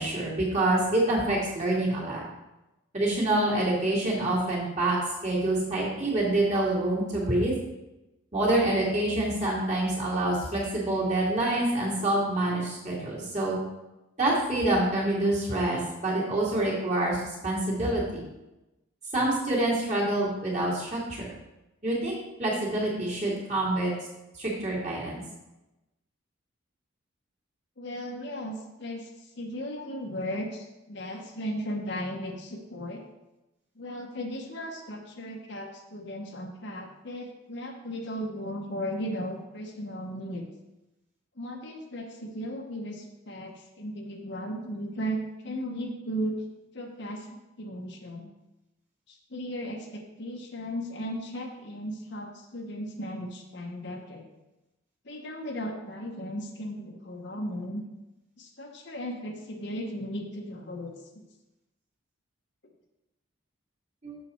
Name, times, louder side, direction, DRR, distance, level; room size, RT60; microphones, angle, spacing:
voice 1, 0.0-2.2 2.9-5.0 5.2-7.5 8.3-13.6 14.2-18.2 19.1-21.3 21.8-23.9 24.4-25.2 64.0-64.2, right 1 dB, 35° right, -4 dB, 2.4 m, -26 dB
voice 2, 27.8-29.1 29.4-33.0 33.8-40.5 41.4-45.2 45.4-46.4 46.7-48.3 49.1-54.3 55.0-57.8 58.4-61.2, equal, 55° left, 2 dB, 1.0 m, -36 dB
7.2 x 6.7 x 4.3 m, 0.98 s
head